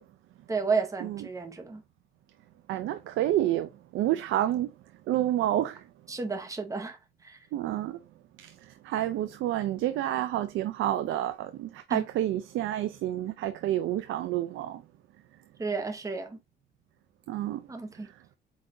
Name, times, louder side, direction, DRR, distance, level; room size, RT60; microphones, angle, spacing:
voice 1, 0.5-1.8 6.1-7.0 7.2-7.4 11.9-12.1 15.6-16.4 17.7-18.1, right 4 dB, 15° right, 0.9 m, -32 dB
voice 2, 2.7-4.7 5.1-5.8 7.5-8.0 8.4-14.8 17.3-17.7 18.0-18.1, right 13 dB, 80° right, 0.4 m, -29 dB
4.7 x 4.0 x 2.6 m
cardioid pair, 90°, 20 cm